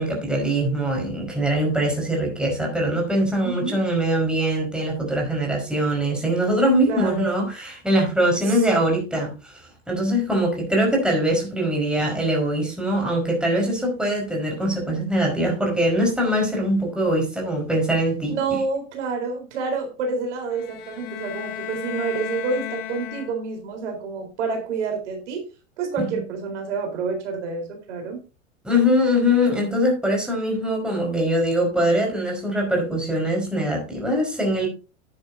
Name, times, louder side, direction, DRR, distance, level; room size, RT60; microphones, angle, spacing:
voice 1, 0.0-9.6 9.9-18.4 26.0-26.2 28.6-34.7, equal, ahead, 1 dB, 4.8 m, -22 dB
voice 2, 3.4-3.8 6.9-7.4 8.5-8.6 18.3-25.5 25.8-28.2, right 4 dB, 65° right, 3 dB, 4.1 m, -28 dB
sound 1, 20.5-23.7, left 12 dB, 55° left, 1.7 m, -34 dB
11.0 x 10.0 x 2.7 m, 0.31 s
hypercardioid pair, 105°, 37 cm